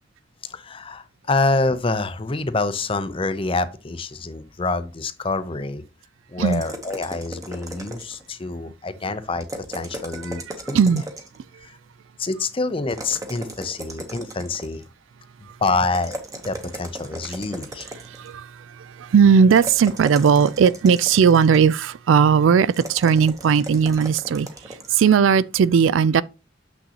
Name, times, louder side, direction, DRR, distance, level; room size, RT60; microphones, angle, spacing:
voice 1, 0.4-5.8 6.3-10.4 10.7-10.8 11.6-11.8 12.2-14.8 15.6-16.2 16.4-17.9, left 3 dB, 30° left, 0.5 m, -26 dB
sound 1, 6.5-8.3 9.4-11.4 12.9-14.9 15.9-18.3 19.5-21.7 22.7-24.9, right 1 dB, 15° right, 1.0 m, -37 dB
voice 2, 18.0-26.2, right 6 dB, 80° right, 0.4 m, -17 dB
6.8 x 6.2 x 2.9 m
head